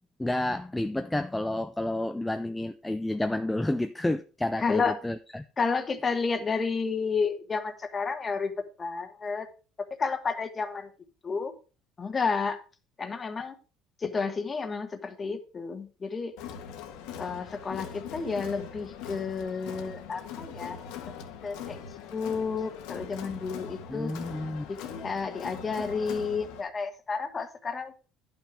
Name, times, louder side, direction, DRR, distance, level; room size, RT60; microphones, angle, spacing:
voice 1, 0.2-5.4 23.9-24.7, left 1 dB, 5° left, 0.4 m, -30 dB
voice 2, 4.6-4.9 5.6-8.5 8.8-9.5 10.0-10.9 11.2-11.5 12.0-12.6 13.0-13.6 14.0-16.3 17.2-20.8 21.4-21.8 22.1-24.1 24.7-28.0, left 5 dB, 25° left, 1.2 m, -31 dB
Crowd, 16.4-26.6, left 7 dB, 85° left, 1.5 m, -41 dB
11.0 x 5.9 x 4.9 m
cardioid pair, 140°, 0 cm